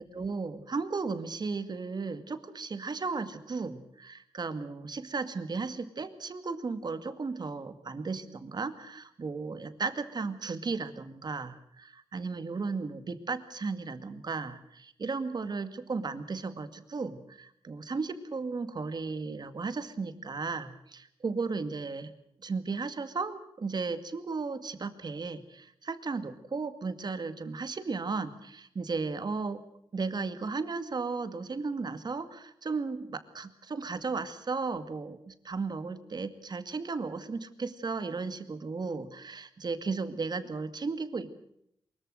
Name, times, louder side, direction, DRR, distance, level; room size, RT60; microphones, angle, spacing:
voice 1, 0.0-22.1 22.4-29.6 29.9-41.5, right 4 dB, 50° right, 10 dB, 2.2 m, -35 dB
23.5 x 22.0 x 6.5 m, 0.72 s
wide cardioid pair, 95°, 10 cm